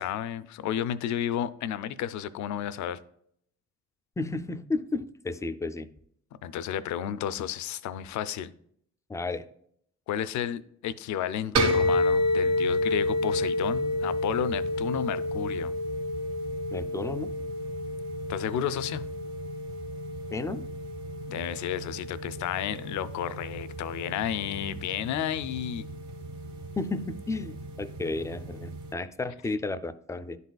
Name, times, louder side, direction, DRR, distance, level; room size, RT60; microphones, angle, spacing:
voice 1, 0.0-3.0 6.4-8.5 10.1-15.7 18.3-19.0 21.3-25.9, left 10 dB, 70° left, 0.5 m, -32 dB
voice 2, 4.2-5.9 9.1-9.4 16.7-17.3 20.3-20.6 26.8-30.4, left 3 dB, 10° left, 0.3 m, -33 dB
sound 1, 11.6-28.9, left 1 dB, 65° right, 1.2 m, -31 dB
11.0 x 4.1 x 2.3 m
cardioid pair, 90°, 30 cm